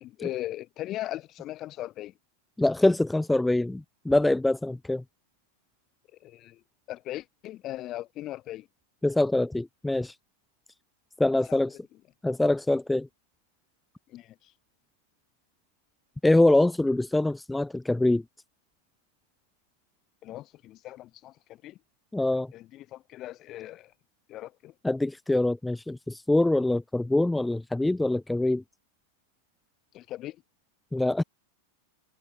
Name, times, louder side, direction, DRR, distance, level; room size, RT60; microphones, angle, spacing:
voice 1, 0.0-2.1 6.2-6.6 6.9-8.7 11.5-11.6 14.1-14.5 20.2-21.8 22.5-23.9 24.3-24.7 29.9-30.4, left 14 dB, 35° left, 1.8 m, -38 dB
voice 2, 2.6-5.0 9.0-10.1 11.2-11.8 12.2-13.1 16.2-18.2 22.1-22.5 24.8-28.6 30.9-31.2, left 2 dB, 5° left, 0.6 m, -24 dB
figure-of-eight pair, 90°, 0 cm